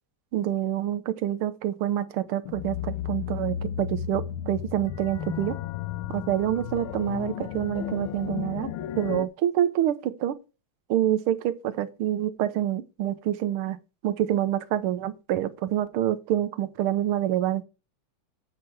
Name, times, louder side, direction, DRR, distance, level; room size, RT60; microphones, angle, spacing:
voice 1, 0.3-5.6 6.1-8.7 9.0-10.4 10.9-13.8 14.0-17.6, right 11 dB, 80° right, 1.7 m, -27 dB
sound 1, 2.5-9.3, left 10 dB, 75° left, 1.4 m, -33 dB
7.5 x 6.6 x 4.4 m
omnidirectional pair, 2.4 m